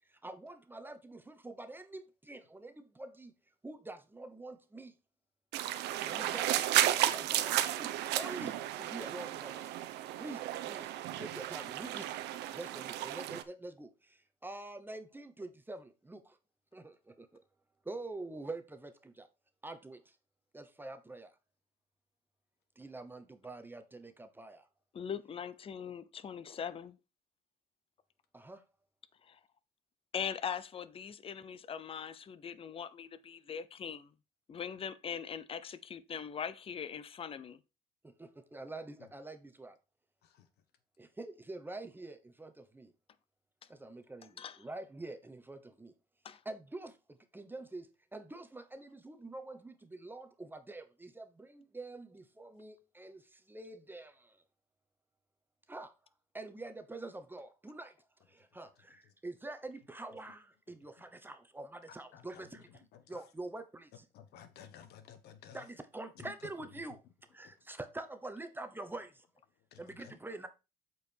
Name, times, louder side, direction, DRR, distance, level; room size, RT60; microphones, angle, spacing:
voice 1, 0.2-3.3 3.6-4.9 6.0-6.5 7.0-9.7 10.2-10.9 11.2-12.1 12.5-16.4 16.7-17.3 17.8-19.3 19.6-20.0 20.5-21.3 22.8-24.7 28.3-28.6 38.2-39.8 41.0-42.9 43.7-45.9 46.4-47.0 47.3-54.4 55.7-55.9 56.3-57.9 58.3-64.0 65.5-67.0 67.3-69.2 69.8-70.5, right 2 dB, 10° right, 0.9 m, -46 dB
sound 1, 5.5-13.4, right 13 dB, 85° right, 0.8 m, -33 dB
voice 2, 24.9-27.0 29.2-29.4 30.1-34.1 34.5-37.6 44.4-44.7 46.2-46.4, left 7 dB, 35° left, 0.6 m, -41 dB
voice 3, 64.1-65.6 66.2-66.3 69.7-70.1, left 9 dB, 75° left, 1.3 m, -53 dB
8.2 x 4.7 x 4.5 m
cardioid pair, 110°, 17 cm